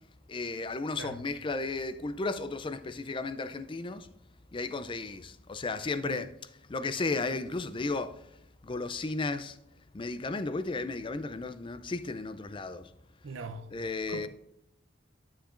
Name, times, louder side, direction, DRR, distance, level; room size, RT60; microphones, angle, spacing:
voice 1, 0.3-4.1 4.5-6.3 6.7-8.2 8.6-9.6 9.9-12.9 13.7-14.3, left 3 dB, 25° left, 0.4 m, -34 dB
voice 2, 13.2-13.7 14.1-14.3, right 3 dB, 90° right, 0.7 m, -41 dB
9.2 x 7.2 x 2.5 m
head